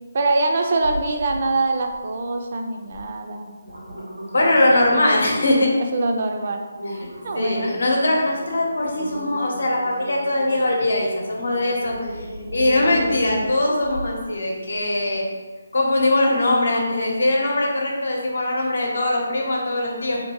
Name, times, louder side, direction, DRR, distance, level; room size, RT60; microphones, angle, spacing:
voice 1, 0.1-3.5 5.9-6.7 7.2-7.8, right 2 dB, 50° right, 4 dB, 0.4 m, -23 dB
sound 1, 0.8-1.5 1.8-2.3 2.9-3.0 3.4-5.7 6.2-6.3 6.7-14.2 14.7-14.8, equal, 90° right, 1.4 m, -35 dB
voice 2, 4.3-5.7 7.0-7.1 7.3-12.3 12.5-15.2 15.7-20.2, left 1 dB, 70° left, -1 dB, 0.8 m, -21 dB
3.1 x 2.9 x 2.9 m, 1.4 s
figure-of-eight pair, 155°, 0 cm